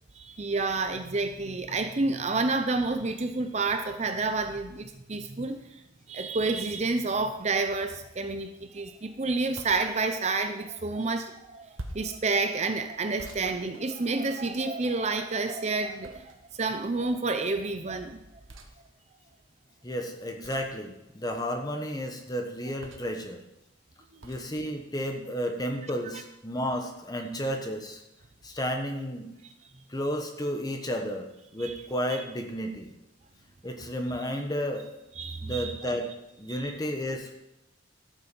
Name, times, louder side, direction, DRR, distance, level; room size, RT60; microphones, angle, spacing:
voice 1, 0.2-5.8 6.1-18.2 31.6-31.7 32.1-32.2 35.2-35.9 36.5-36.7, right 3 dB, 35° right, 8 dB, 0.6 m, -29 dB
sound 1, 9.6-9.9 11.8-12.2 13.2-14.4 16.0-16.6 18.5-18.7 20.4-20.8 22.8-23.2 24.2-24.5, right 1 dB, 80° right, 1.4 m, -45 dB
voice 2, 19.8-23.4 24.2-28.0 28.4-29.3 29.9-31.3 31.5-32.9 33.6-34.9 35.4-36.1 36.4-37.4, equal, 20° left, 4 dB, 1.2 m, -32 dB
13.0 x 7.3 x 5.4 m, 0.92 s
head